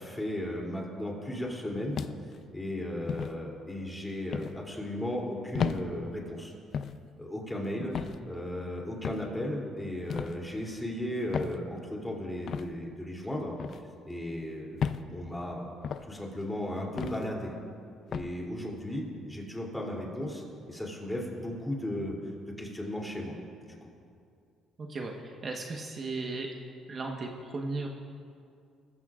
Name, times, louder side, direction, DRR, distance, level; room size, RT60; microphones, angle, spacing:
voice 1, 0.0-2.0 2.5-6.5 7.2-7.9 8.3-13.5 14.0-14.8 15.1-15.7 16.0-17.5 18.1-22.2 22.6-23.3 23.7-23.8, left 1 dB, 10° left, -2 dB, 3.0 m, -35 dB
sound 1, 1.9-2.4 3.1-3.3 4.3-4.6 5.5-5.8 6.7-7.0 7.9-8.2 9.0-9.3 10.1-10.4 11.3-11.6 12.5-12.7 13.6-13.8 14.8-15.1 15.8-16.1 17.0-17.2 18.1-18.3, left 7 dB, 55° left, 0.5 m, -33 dB
voice 2, 24.8-26.5 26.9-27.9, right 3 dB, 40° right, 1 dB, 1.2 m, -36 dB
20.5 x 14.5 x 2.5 m, 2.3 s
cardioid pair, 100°, 0 cm